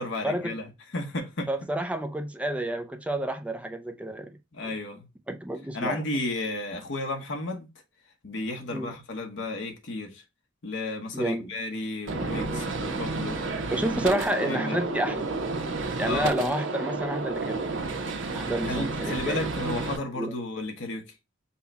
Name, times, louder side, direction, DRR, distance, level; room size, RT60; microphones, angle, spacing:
voice 1, 0.0-1.5 4.5-5.1 5.7-7.7 8.2-10.2 10.6-13.7 14.1-14.2 14.4-14.8 16.1-16.4 18.2-18.4 18.6-21.1, left 2 dB, 70° left, 1.1 m, -33 dB
voice 2, 1.5-4.3 5.3-6.0 8.7-8.9 11.1-11.5 13.7-15.3 16.0-17.8 18.3-19.4 20.2-20.3, right 1 dB, 5° right, 0.5 m, -29 dB
Gunshot gunfire, 12.1-20.0, right 3 dB, 75° right, 1.0 m, -31 dB
5.6 x 2.3 x 4.1 m
head